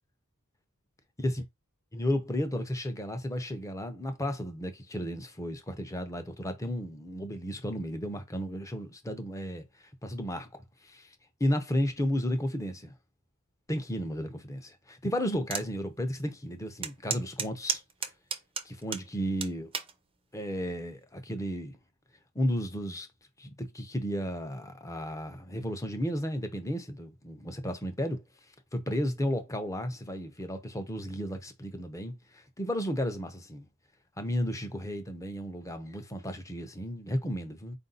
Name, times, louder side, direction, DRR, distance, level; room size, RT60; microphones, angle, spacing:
voice 1, 1.9-9.7 10.0-11.1 11.4-12.9 13.7-17.8 18.6-19.7 20.3-21.8 22.3-23.1 23.4-28.2 28.7-33.7 34.2-37.8, equal, 15° left, 0.7 m, -33 dB
sound 1, 15.5-15.7 16.2-16.3 16.8-19.1 19.4-19.9 20.6-20.9, right 6 dB, 25° right, 0.6 m, -33 dB
4.6 x 2.6 x 3.9 m
head